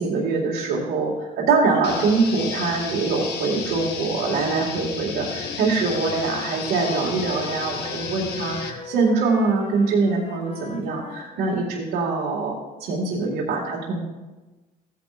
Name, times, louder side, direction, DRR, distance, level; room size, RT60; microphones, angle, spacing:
voice 1, 0.0-12.5 12.8-14.0, right 4 dB, 85° right, -5 dB, 2.2 m, -23 dB
sound 1, 1.8-8.7, left 5 dB, 75° left, 1.5 m, -32 dB
Wind instrument woodwind instrument, 5.0-11.8, left 4 dB, 40° left, 1.2 m, -41 dB
15.0 x 10.5 x 2.6 m, 1.2 s
cardioid pair, 110°, 17 cm